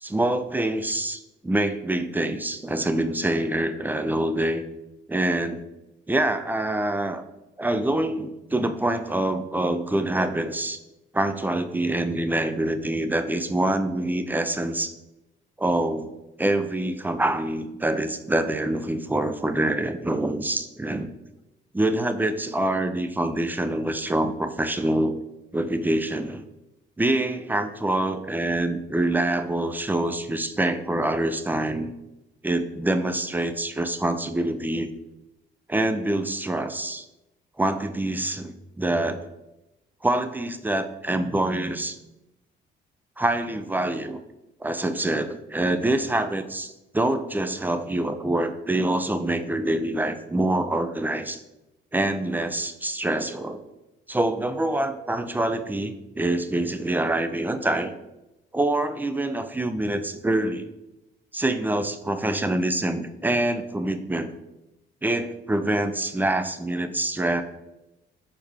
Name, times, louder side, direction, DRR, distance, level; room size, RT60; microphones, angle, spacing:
voice 1, 0.0-4.6 5.1-5.6 6.1-7.2 7.6-10.8 11.1-14.9 15.6-16.1 16.4-21.1 21.7-25.2 25.5-26.4 27.0-31.9 32.4-34.9 35.7-37.0 37.6-39.3 40.0-42.0 43.2-44.2 44.6-51.4 51.9-53.6 54.1-57.9 58.5-60.7 61.3-64.3 65.0-67.4, right 1 dB, 10° right, 9 dB, 0.3 m, -25 dB
4.5 x 3.3 x 3.5 m, 0.94 s
cardioid pair, 90°, 20 cm